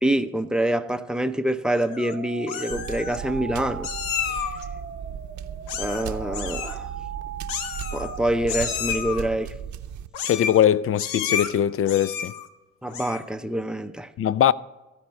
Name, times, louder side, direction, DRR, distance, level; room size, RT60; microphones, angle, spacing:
voice 1, 0.0-3.9 5.7-6.9 7.9-9.5 12.8-14.1, right 1 dB, ahead, 0.6 m, -26 dB
Meow, 1.7-2.1 2.5-3.2 3.8-4.6 5.7-6.1 6.3-6.8 7.5-8.2 8.5-9.2 10.1-10.6 11.0-11.5 11.9-12.5 12.9-13.3, left 8 dB, 90° left, 0.8 m, -31 dB
sound 1, 1.7-9.1, right 5 dB, 35° right, 0.8 m, -39 dB
sound 2, 2.7-10.1, right 8 dB, 65° right, 0.8 m, -36 dB
voice 2, 10.2-12.3 14.2-14.5, left 10 dB, 45° left, 0.4 m, -21 dB
14.5 x 4.9 x 7.0 m
supercardioid pair, 60°, 32 cm